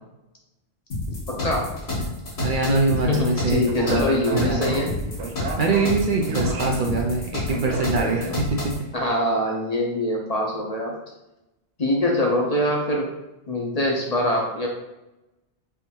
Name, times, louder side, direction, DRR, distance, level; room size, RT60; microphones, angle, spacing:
sound 1, 0.9-8.8, left 2 dB, 70° left, 1.6 m, -29 dB
voice 1, 1.3-1.7 3.1-4.9 6.4-6.8 8.0-8.1 8.9-10.9 11.8-13.1 13.5-14.7, left 1 dB, 40° left, -2 dB, 0.7 m, -24 dB
voice 2, 2.4-4.8 5.6-8.7, right 3 dB, 55° right, 0 dB, 0.6 m, -23 dB
Speech, 3.6-8.7, right 3 dB, 90° right, 1.0 m, -34 dB
3.5 x 2.6 x 4.4 m, 0.93 s
omnidirectional pair, 1.1 m